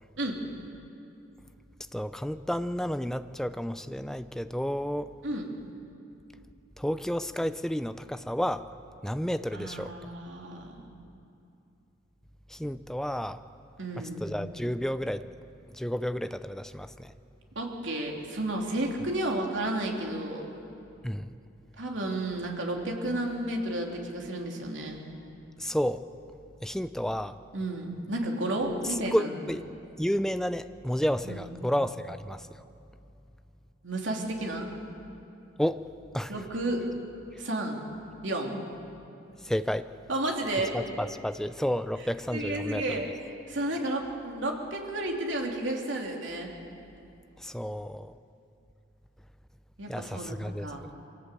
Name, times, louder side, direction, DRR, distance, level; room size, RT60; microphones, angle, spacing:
voice 1, 1.9-5.1 6.8-8.6 9.0-10.0 12.5-13.4 14.0-15.3 15.7-17.1 21.0-21.4 25.6-26.0 26.6-27.4 28.9-29.7 30.0-32.5 35.6-35.8 36.1-36.3 39.4-39.9 40.7-43.0 47.4-48.1 49.9-50.9, equal, 5° left, 11 dB, 0.5 m, -31 dB
voice 2, 9.5-11.0 13.8-14.3 17.5-20.5 21.8-25.0 27.5-29.3 31.2-31.5 33.8-34.7 36.3-36.8 37.4-37.8 38.2-38.6 40.1-40.8 42.3-43.1 43.5-46.5 49.8-50.8, right 1 dB, 75° right, 1 dB, 3.1 m, -32 dB
24.0 x 16.5 x 8.4 m, 2.7 s
head